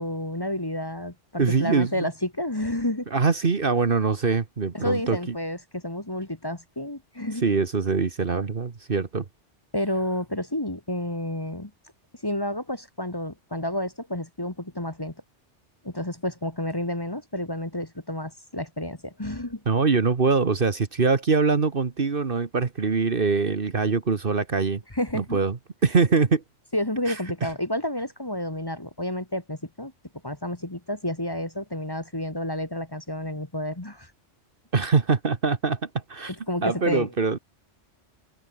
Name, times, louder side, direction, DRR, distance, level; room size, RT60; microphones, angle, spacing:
voice 1, 0.0-3.1 4.7-7.4 9.7-11.7 12.2-15.1 15.8-19.6 24.9-25.4 26.7-29.9 30.2-34.1 36.5-37.1, left 1 dB, 20° left, 1.8 m, -30 dB
voice 2, 1.4-2.1 3.1-5.3 7.4-9.2 19.7-24.8 25.1-25.6 25.8-26.4 27.1-27.2 27.4-27.5 34.7-36.3 36.6-37.4, right 4 dB, 50° right, 1.5 m, -23 dB
omnidirectional pair, 1.2 m